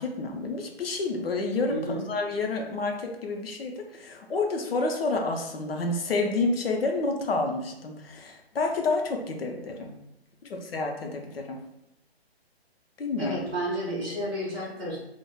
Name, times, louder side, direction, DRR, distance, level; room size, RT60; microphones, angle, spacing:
voice 1, 0.0-9.9 10.4-11.6 13.0-13.4, left 3 dB, 65° left, 3 dB, 0.6 m, -29 dB
voice 2, 1.7-2.0 13.2-15.0, equal, 10° right, -11 dB, 0.6 m, -31 dB
3.3 x 2.1 x 2.3 m, 0.84 s
hypercardioid pair, 165°, 32 cm